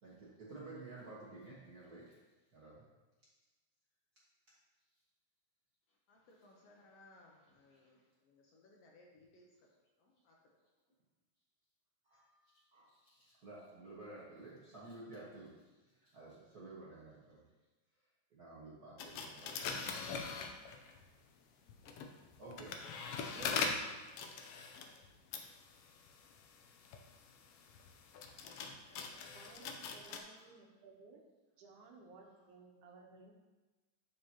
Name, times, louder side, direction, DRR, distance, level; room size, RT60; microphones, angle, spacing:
voice 1, 0.0-2.2 2.5-2.8 12.0-17.4 18.3-20.2 22.4-22.7 23.3-23.7 30.3-30.5, right 2 dB, 50° right, -7 dB, 1.1 m, -52 dB
voice 2, 5.9-9.7 10.0-10.4, left 2 dB, 70° left, -2 dB, 1.7 m, -64 dB
sound 1, 19.0-21.0 21.7-30.2, left 5 dB, 90° left, 1.3 m, -42 dB
voice 3, 29.3-31.2 31.6-33.3, right 4 dB, 85° right, 1 dB, 2.4 m, -58 dB
7.6 x 6.8 x 2.9 m, 1.2 s
omnidirectional pair, 3.5 m